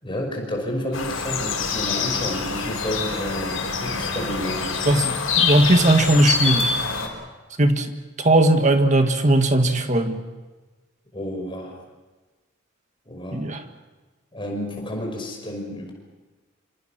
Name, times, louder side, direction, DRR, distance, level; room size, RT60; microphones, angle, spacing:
voice 1, 0.0-4.8 11.1-11.8 13.0-13.4 14.3-15.9, equal, 25° left, 1 dB, 5.8 m, -30 dB
sound 1, 0.9-7.1, left 5 dB, 85° left, 5.5 m, -25 dB
voice 2, 4.9-6.8 7.6-7.9 8.2-10.2 13.3-13.6, right 1 dB, 35° right, 6 dB, 1.9 m, -18 dB
27.0 x 26.0 x 6.1 m, 1.2 s
head